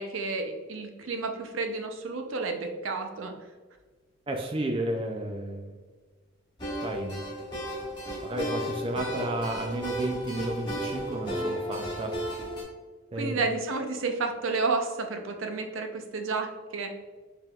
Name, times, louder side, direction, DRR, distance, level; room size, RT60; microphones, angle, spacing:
voice 1, 0.0-3.3 13.2-16.9, right 3 dB, 80° right, 5 dB, 0.6 m, -31 dB
voice 2, 4.3-5.8 6.8-7.3 8.2-12.2 13.1-13.4, right 1 dB, 25° right, 3 dB, 0.3 m, -32 dB
sound 1, 6.6-12.6, equal, 20° left, 1.2 m, -34 dB
4.7 x 3.5 x 2.3 m, 1.4 s
head